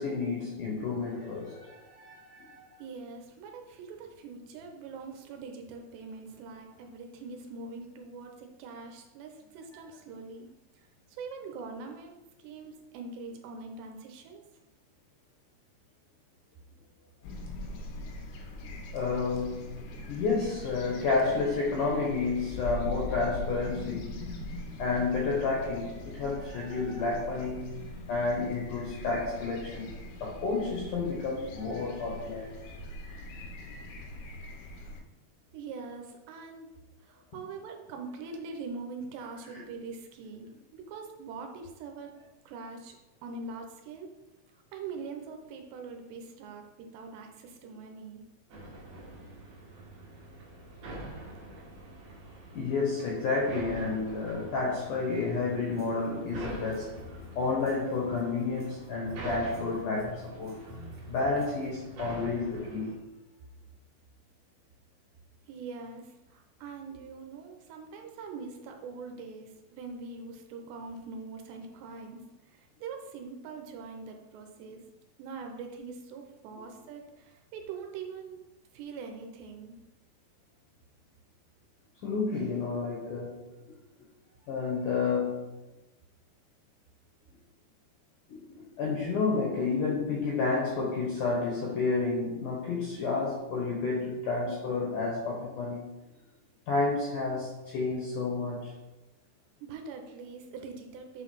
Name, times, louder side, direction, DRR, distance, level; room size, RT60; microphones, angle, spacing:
voice 1, 0.0-2.7 18.9-19.7 20.1-24.1 24.8-27.8 28.1-29.9 30.2-32.5 39.5-39.6 52.5-60.6 61.1-63.0 82.0-83.4 84.5-85.5 88.3-95.9 96.7-98.7, left 4 dB, 70° left, -3 dB, 2.0 m, -30 dB
voice 2, 2.8-10.5 10.7-12.2 12.4-14.4 35.5-36.7 37.0-42.1 42.5-43.0 43.2-44.1 44.7-48.2 65.5-74.8 75.2-78.4 78.7-79.8 99.6-101.2, right 4 dB, 75° right, 3 dB, 2.8 m, -43 dB
sound 1, 17.2-35.0, left 1 dB, 90° left, 3.4 m, -41 dB
sound 2, 48.5-62.9, right 2 dB, 50° right, 2.2 m, -45 dB
sound 3, 55.3-61.7, equal, 35° right, 0.5 m, -48 dB
8.2 x 4.0 x 5.5 m, 1.1 s
omnidirectional pair, 5.3 m